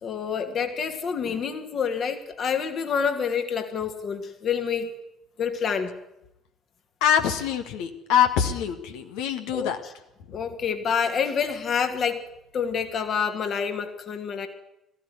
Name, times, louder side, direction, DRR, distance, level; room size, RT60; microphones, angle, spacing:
voice 1, 0.0-4.9 5.4-5.9 9.5-9.9 10.3-12.2 12.5-14.5, left 6 dB, 45° left, 6 dB, 2.5 m, -27 dB
voice 2, 7.0-9.8, left 8 dB, 65° left, 6 dB, 1.7 m, -24 dB
18.0 x 15.0 x 9.6 m, 0.86 s
figure-of-eight pair, 50°, 0 cm